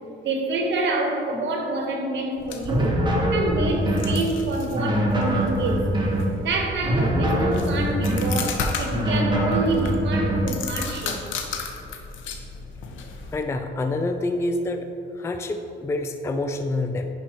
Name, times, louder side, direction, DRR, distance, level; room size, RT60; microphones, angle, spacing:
voice 1, 0.2-2.9 3.3-5.9 6.4-11.2, right 2 dB, 65° right, 2 dB, 1.2 m, -27 dB
sound 1, 2.4-13.4, left 4 dB, 75° left, 0.7 m, -35 dB
sound 2, 2.6-4.2 4.7-6.3 6.8-8.4 8.9-10.5, equal, 20° right, 1.2 m, -23 dB
voice 2, 13.3-14.9 15.1-17.1, left 2 dB, 15° left, 6 dB, 0.3 m, -27 dB
10.5 x 4.3 x 2.9 m, 2.9 s
cardioid pair, 90°, 20 cm